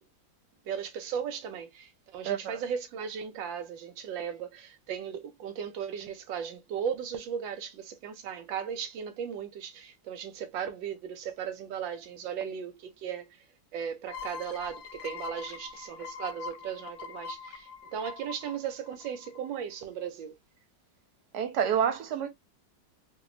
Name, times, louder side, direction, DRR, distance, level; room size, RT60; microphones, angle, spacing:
voice 1, 0.7-13.4 13.7-20.4, right 8 dB, 85° right, 1.4 m, -37 dB
voice 2, 2.2-2.6 21.3-22.3, right 8 dB, 65° right, 1.3 m, -28 dB
sound 1, 14.1-19.6, left 5 dB, 80° left, 0.6 m, -43 dB
4.7 x 2.0 x 2.5 m
omnidirectional pair, 2.0 m